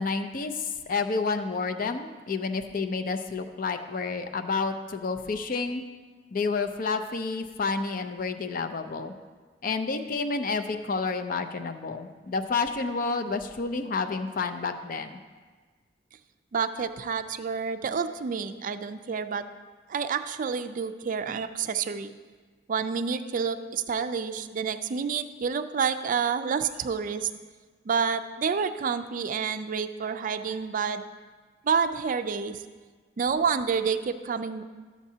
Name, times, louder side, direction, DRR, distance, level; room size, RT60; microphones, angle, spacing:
voice 1, 0.0-5.8 6.3-9.1 9.6-15.2, left 4 dB, 50° left, 8 dB, 0.5 m, -30 dB
voice 2, 16.5-19.4 19.9-22.1 22.7-27.3 27.9-31.1 31.6-32.6 33.2-34.6, right 6 dB, 45° right, 10 dB, 0.4 m, -29 dB
12.5 x 7.2 x 2.8 m, 1.4 s
head